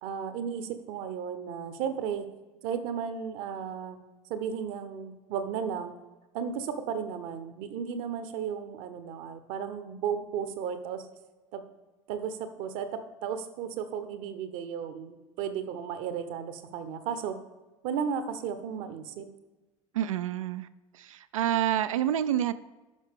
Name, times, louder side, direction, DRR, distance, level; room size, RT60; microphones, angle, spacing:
voice 1, 0.0-2.3 2.6-4.0 4.3-5.9 6.3-11.1 11.5-11.6 12.1-12.9 13.2-17.4 17.8-19.3, right 7 dB, 50° right, 10 dB, 0.9 m, -34 dB
voice 2, 19.9-20.7 20.9-22.5, right 11 dB, 70° right, 13 dB, 0.4 m, -28 dB
11.5 x 5.6 x 3.6 m, 1.2 s
figure-of-eight pair, 70°, 17 cm